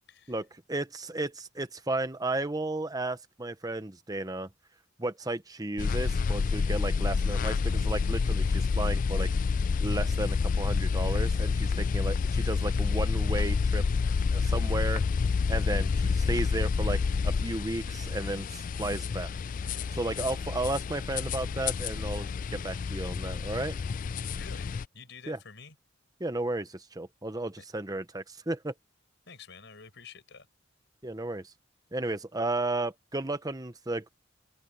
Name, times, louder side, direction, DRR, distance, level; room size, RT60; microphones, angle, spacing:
voice 1, 0.3-4.5 5.0-9.3 9.8-13.8 14.3-15.0 15.5-19.3 19.9-23.7 25.3-25.4 26.2-28.7 31.0-31.5 31.9-34.1, right 2 dB, 20° right, 1.1 m, -33 dB
sound 1, 5.8-24.8, left 5 dB, 40° left, 0.3 m, -28 dB
voice 2, 24.4-25.8 29.3-30.5, left 5 dB, 65° left, 6.8 m, -49 dB
open air
head